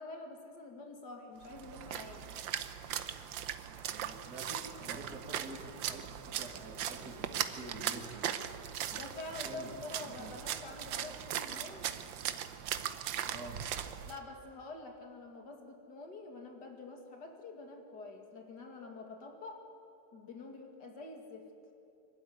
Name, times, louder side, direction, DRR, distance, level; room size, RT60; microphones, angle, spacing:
voice 1, 0.0-2.3 8.9-11.9 14.0-19.6 20.1-21.5, left 3 dB, 65° left, 4 dB, 2.7 m, -47 dB
Splash splatter, 1.4-14.2, right 10 dB, 85° right, 1.6 m, -39 dB
voice 2, 3.6-8.5 9.4-9.7 10.0-10.4 13.3-13.6, right 2 dB, 55° right, 0 dB, 3.0 m, -48 dB
24.5 x 12.5 x 9.6 m, 2.9 s
omnidirectional pair, 2.0 m